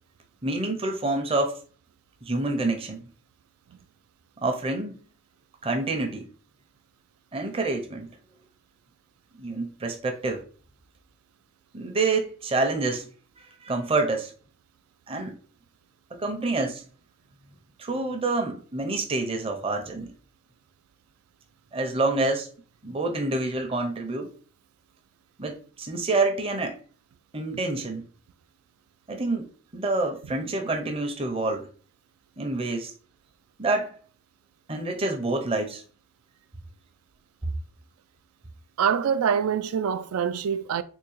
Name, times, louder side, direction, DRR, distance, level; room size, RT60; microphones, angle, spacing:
voice 1, 0.4-1.6 2.2-3.1 4.4-4.9 5.6-6.3 7.3-8.1 9.4-10.4 11.7-13.1 13.4-14.3 15.1-15.4 16.1-16.9 17.8-20.1 21.7-22.5 22.8-24.3 25.4-26.8 27.3-28.1 29.1-31.7 32.4-32.9 33.6-34.0 34.7-35.8, right 2 dB, 25° right, 0.6 m, -27 dB
voice 2, 38.8-40.8, right 7 dB, 85° right, 0.3 m, -25 dB
3.6 x 2.6 x 3.1 m
head